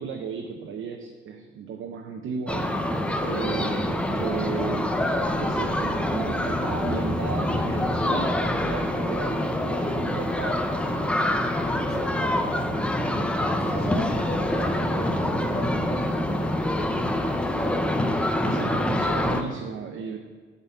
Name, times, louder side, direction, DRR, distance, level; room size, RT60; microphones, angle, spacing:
voice 1, 0.0-2.8 3.2-4.9 5.4-10.7 13.7-14.1 18.4-20.2, right 6 dB, 80° right, 3 dB, 0.7 m, -34 dB
Kids Playing, 2.5-19.4, left 1 dB, 5° left, 0.4 m, -26 dB
voice 2, 9.8-10.2 11.6-12.5 13.4-17.7, left 1 dB, 50° left, 2 dB, 1.3 m, -37 dB
9.0 x 4.1 x 7.1 m, 1.5 s
wide cardioid pair, 175°, 21 cm